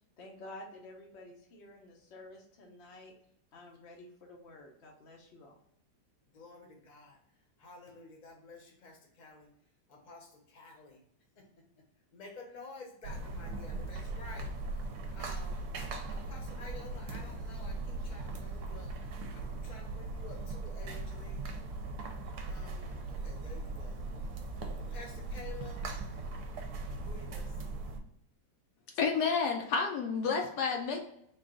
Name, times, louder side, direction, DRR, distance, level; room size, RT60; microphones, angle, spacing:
voice 1, 0.2-3.1 3.5-5.6, left 1 dB, 55° left, 0 dB, 0.7 m, -51 dB
voice 2, 6.3-7.2 7.6-9.5 9.9-11.0 11.4-11.5 12.1-14.5 14.9-15.7 16.1-18.9 19.3-21.5 22.5-25.8 26.9-27.5, left 3 dB, 35° left, 0 dB, 0.8 m, -51 dB
sound 1, 13.0-28.0, right 2 dB, 70° right, 1.1 m, -39 dB
voice 3, 29.0-31.0, left 5 dB, 75° left, 2 dB, 1.1 m, -30 dB
3.8 x 2.3 x 3.7 m, 0.73 s
omnidirectional pair, 1.9 m